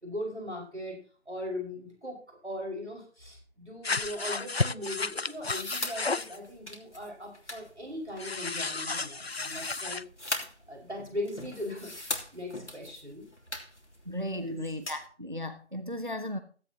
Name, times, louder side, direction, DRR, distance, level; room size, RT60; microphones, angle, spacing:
voice 1, 0.0-1.0 1.3-10.0 10.7-11.9 12.3-13.3 14.3-14.6, left 1 dB, 75° right, 0 dB, 5.3 m, -39 dB
sound 1, 3.8-6.4 8.2-10.0, left 3 dB, 60° left, 0.5 m, -32 dB
sound 2, 4.8-15.1, left 1 dB, 80° left, 3.2 m, -41 dB
voice 2, 14.1-16.4, left 1 dB, 45° right, 9 dB, 0.9 m, -36 dB
16.0 x 13.5 x 2.9 m, 0.40 s
figure-of-eight pair, 180°, 35 cm